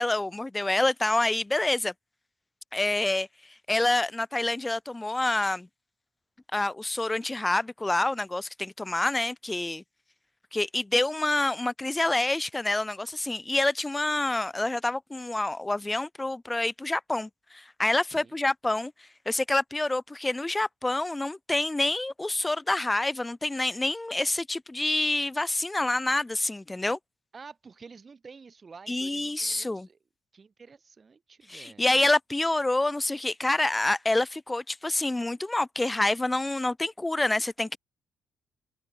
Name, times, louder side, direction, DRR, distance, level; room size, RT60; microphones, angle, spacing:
voice 1, 0.0-1.9 2.7-3.3 3.7-5.7 6.5-9.8 10.5-18.9 19.3-27.0 28.9-29.9 31.5-37.8, left 2 dB, 15° left, 0.4 m, -27 dB
voice 2, 27.3-30.0 30.3-32.1, right 5 dB, 35° right, 3.0 m, -50 dB
cardioid pair, 90°, 0 cm